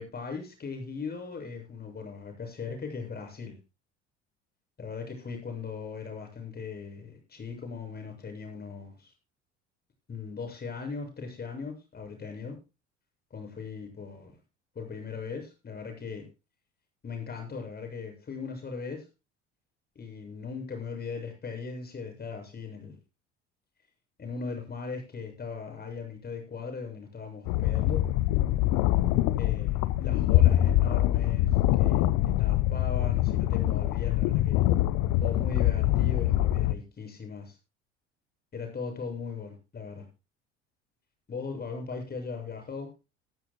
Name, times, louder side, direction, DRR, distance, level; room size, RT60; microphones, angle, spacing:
voice 1, 0.0-3.5 4.8-9.1 10.1-12.5 13.3-14.3 14.8-16.3 17.0-19.0 20.0-23.0 24.2-28.0 29.4-32.0 32.4-34.6 35.2-37.6 38.5-40.0 41.3-42.9, left 5 dB, 25° left, 7.4 m, -38 dB
sound 1, 27.5-36.7, left 14 dB, 50° left, 0.9 m, -24 dB
20.0 x 13.5 x 2.3 m
figure-of-eight pair, 65°, 35 cm